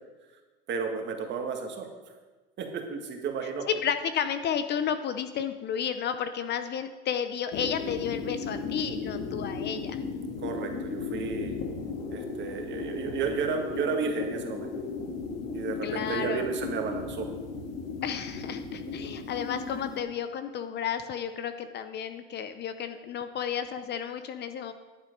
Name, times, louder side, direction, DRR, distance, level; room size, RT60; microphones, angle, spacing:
voice 1, 0.7-1.9 2.6-3.7 10.4-11.5 12.1-14.7 15.5-17.3, right 5 dB, 40° right, 4 dB, 1.8 m, -32 dB
voice 2, 3.7-10.0 15.8-16.4 18.0-24.7, left 8 dB, 35° left, 10 dB, 0.7 m, -32 dB
sound 1, 7.5-20.0, left 4 dB, 60° left, 2.0 m, -35 dB
11.0 x 9.0 x 5.3 m, 1.3 s
supercardioid pair, 125°, 30 cm